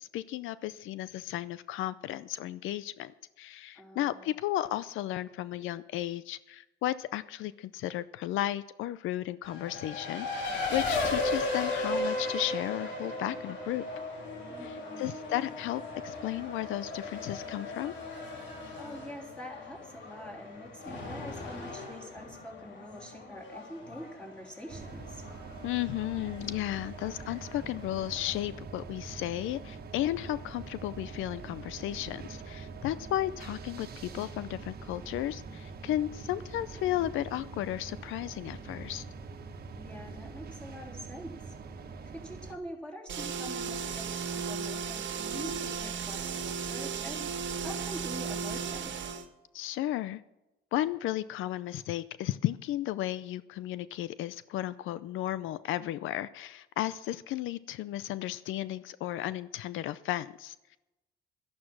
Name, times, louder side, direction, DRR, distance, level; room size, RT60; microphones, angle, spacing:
voice 1, 0.0-3.1 3.4-13.8 14.6-17.9 25.6-39.0 49.5-50.2 50.7-60.8, left 14 dB, 85° left, 16 dB, 0.5 m, -34 dB
voice 2, 3.7-4.3 14.5-15.2 18.7-25.3 39.7-41.5 42.1-49.0, equal, 5° left, -2 dB, 3.3 m, -45 dB
Race car auto racing, 9.4-28.6, left 2 dB, 65° left, 3.3 m, -37 dB
sound 1, 24.7-42.6, right 4 dB, 50° right, 1.4 m, -44 dB
sound 2, 43.1-49.3, right 6 dB, 65° right, 1.5 m, -35 dB
12.0 x 11.0 x 6.0 m, 0.96 s
cardioid pair, 90°, 20 cm